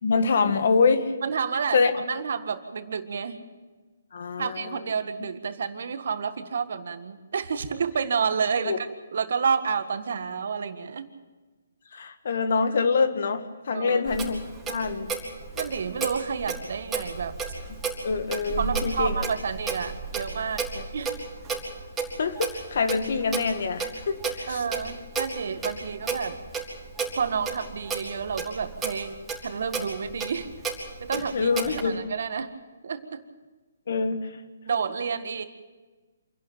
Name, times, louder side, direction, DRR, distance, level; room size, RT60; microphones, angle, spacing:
voice 1, 0.0-1.1 1.7-1.9 4.1-4.8 8.6-8.8 11.9-14.4 14.7-15.1 18.0-19.2 20.7-20.8 22.2-24.6 31.1-32.1 33.9-34.3, left 4 dB, 60° left, 9 dB, 1.9 m, -25 dB
voice 2, 1.2-3.4 4.4-11.1 13.7-14.0 15.5-17.3 18.5-20.6 20.9-21.1 24.5-26.4 27.1-29.1 29.4-30.5 31.0-32.5 32.8-33.2 34.7-35.4, right 6 dB, 60° right, 9 dB, 1.7 m, -30 dB
Clock, 14.1-31.8, right 4 dB, 10° right, 4.2 m, -33 dB
27.5 x 11.5 x 9.0 m, 1.3 s
hypercardioid pair, 145°, 0 cm